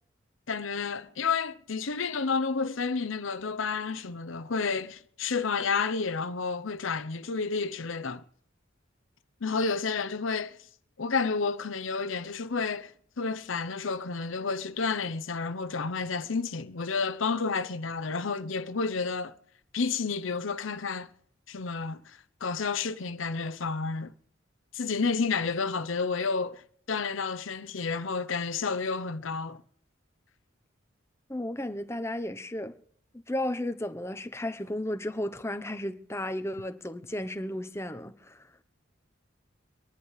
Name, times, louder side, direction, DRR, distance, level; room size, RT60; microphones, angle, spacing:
voice 1, 0.5-8.2 9.4-10.6 11.0-19.3 19.7-21.1 21.5-24.1 24.7-26.6 26.9-29.6, left 4 dB, 85° left, 0.8 m, -30 dB
voice 2, 31.3-32.8 33.3-38.5, left 1 dB, 15° left, 0.8 m, -34 dB
25.5 x 11.0 x 3.3 m
head